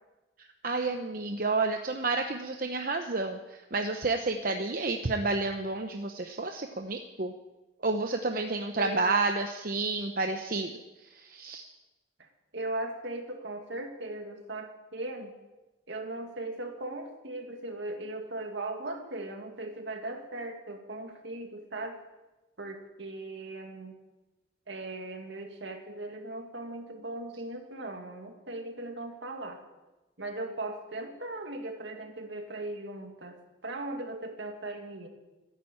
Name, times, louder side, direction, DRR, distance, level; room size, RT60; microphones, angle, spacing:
voice 1, 0.6-7.3 7.8-10.7 11.1-11.6, right 3 dB, 50° right, 5 dB, 0.8 m, -30 dB
voice 2, 8.8-9.2 12.2-15.3 15.9-22.0 22.6-24.0 24.7-29.6 30.2-33.4 33.6-35.1, right 2 dB, 70° right, 4 dB, 2.2 m, -38 dB
13.5 x 10.0 x 8.7 m, 1.1 s
head